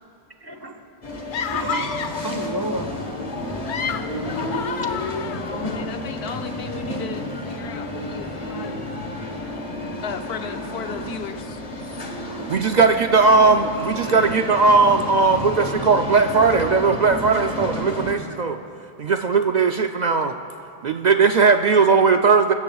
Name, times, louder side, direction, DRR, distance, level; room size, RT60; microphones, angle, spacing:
voice 1, 0.4-0.8 1.1-2.9 4.4-4.5 12.3-12.4, right 2 dB, 25° right, 5 dB, 0.9 m, -31 dB
sound 1, 1.0-18.1, left 1 dB, 35° left, 1.4 m, -31 dB
sound 2, 1.3-2.3 3.5-5.9, left 7 dB, 60° left, 0.7 m, -30 dB
voice 2, 5.6-8.9 10.0-11.6, left 7 dB, 85° left, 7 dB, 1.0 m, -35 dB
voice 3, 12.5-18.6 19.0-20.3 20.8-22.5, right 4 dB, 55° right, 6 dB, 0.5 m, -18 dB
24.5 x 14.0 x 2.3 m, 2.7 s
omnidirectional pair, 1.0 m